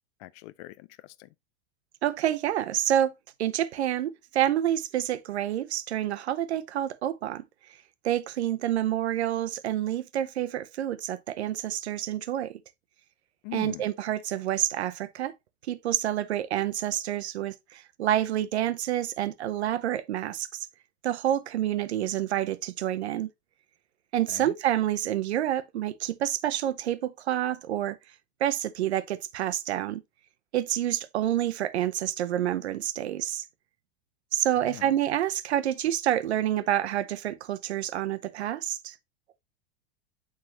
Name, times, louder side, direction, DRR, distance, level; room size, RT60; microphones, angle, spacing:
voice 1, 0.2-1.3 13.4-13.8 24.3-24.5 34.6-34.9, left 22 dB, 45° left, 0.4 m, -42 dB
voice 2, 2.0-3.1 3.4-7.8 8.0-12.6 13.5-15.3 15.6-20.7 21.0-23.3 24.1-28.0 28.4-30.0 30.5-33.4 34.3-39.0, right 12 dB, 85° right, 0.8 m, -28 dB
9.0 x 3.8 x 3.0 m
hypercardioid pair, 125°, 32 cm